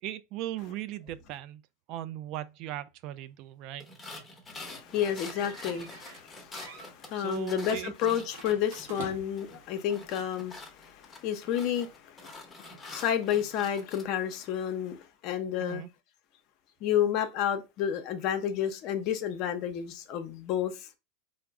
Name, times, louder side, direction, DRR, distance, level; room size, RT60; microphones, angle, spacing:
voice 1, 0.0-1.6 1.9-3.9 7.1-7.9 15.6-15.9, right 14 dB, 50° right, 0.3 m, -38 dB
sound 1, 3.8-9.1 9.4-14.0, left 2 dB, 10° left, 0.9 m, -46 dB
voice 2, 4.5-15.8 16.8-21.0, left 9 dB, 45° left, 0.6 m, -31 dB
sound 2, 5.1-6.3 6.5-6.9 8.3-9.5, right 4 dB, 85° right, 0.9 m, -45 dB
3.5 x 2.0 x 3.4 m
supercardioid pair, 130°, 0 cm